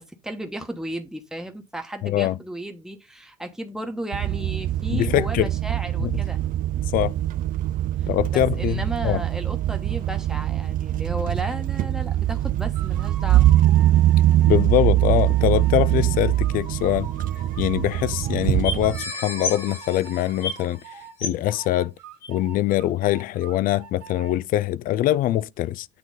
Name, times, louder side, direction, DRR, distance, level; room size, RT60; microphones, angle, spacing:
voice 1, 0.0-6.4 8.0-13.5, right 1 dB, 5° right, 1.2 m, -34 dB
voice 2, 2.0-2.4 4.9-5.5 6.0-6.1 6.9-7.1 8.1-9.2 14.5-17.1 17.6-20.8 21.2-21.9 22.3-25.9, left 13 dB, 55° left, 0.4 m, -23 dB
sound 1, 4.1-19.0, right 13 dB, 55° right, 0.5 m, -22 dB
sound 2, 12.7-18.4 18.8-21.2 21.4-24.4, right 6 dB, 70° right, 1.8 m, -44 dB
sound 3, 17.4-17.5 17.6-17.7 18.2-18.3 18.6-20.8 21.2-21.5 22.2-22.3, left 4 dB, 90° left, 3.7 m, -32 dB
8.4 x 3.0 x 3.9 m
hypercardioid pair, 65°, 17 cm